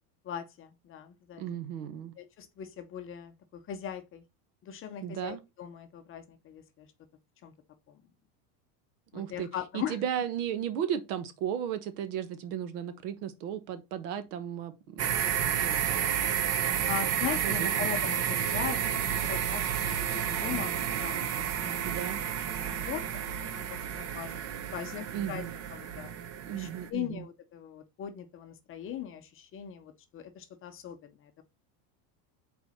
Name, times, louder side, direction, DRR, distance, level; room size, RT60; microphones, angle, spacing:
voice 1, 0.2-1.4 2.2-4.2 4.6-6.9 7.4-7.5 9.1-10.0 16.9-22.0 22.4-25.4 25.7-26.1 26.5-31.4, left 9 dB, 30° left, 0.7 m, -40 dB
voice 2, 1.4-2.1 5.0-5.4 9.1-9.5 9.7-16.1 17.4-17.7 21.8-22.2 25.1-25.5 26.4-27.2, right 9 dB, 70° right, 1.2 m, -35 dB
sound 1, 15.0-26.9, right 9 dB, 35° right, 0.7 m, -31 dB
4.5 x 4.2 x 5.4 m
supercardioid pair, 140°, 46 cm